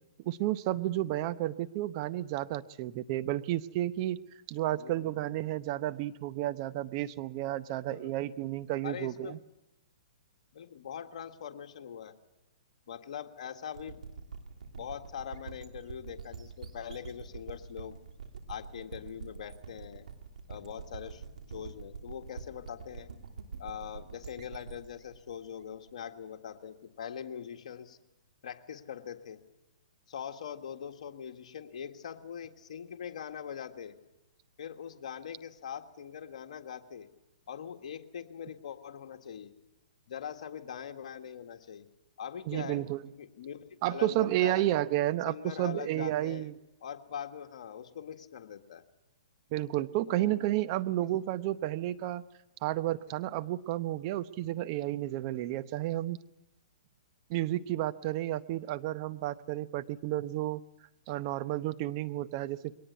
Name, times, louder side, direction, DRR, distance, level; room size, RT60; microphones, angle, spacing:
voice 1, 0.2-4.2 4.5-9.4 42.5-43.0 43.8-46.5 49.5-52.2 52.6-56.2 57.3-60.6 61.1-62.7, right 15 dB, 40° right, 13 dB, 0.8 m, -31 dB
voice 2, 4.8-5.2 7.9-8.2 8.8-9.4 10.5-12.1 12.9-14.0 14.7-18.0 18.5-20.0 20.5-23.1 23.6-28.0 28.4-29.4 30.1-33.9 34.6-37.1 37.5-39.5 40.1-41.9 42.2-44.7 45.3-46.5 46.8-48.8 50.1-50.4, left 8 dB, 65° left, 5 dB, 1.8 m, -42 dB
sound 1, 13.7-26.4, right 5 dB, 75° right, 2.9 m, -46 dB
22.0 x 18.5 x 8.2 m, 0.94 s
hypercardioid pair, 130°, 4 cm